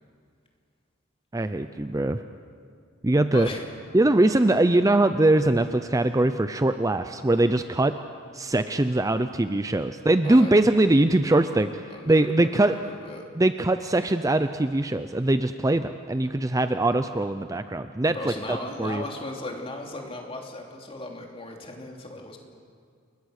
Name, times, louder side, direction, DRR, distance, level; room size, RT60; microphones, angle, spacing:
voice 1, 1.3-2.2 3.0-3.5 3.9-7.9 8.3-12.8 13.4-19.0, right 2 dB, 15° right, 10 dB, 0.5 m, -22 dB
voice 2, 3.2-3.7 10.2-10.5 11.9-13.2 18.1-22.4, left 2 dB, 30° left, 1 dB, 3.0 m, -37 dB
29.0 x 22.5 x 6.5 m, 2.2 s
head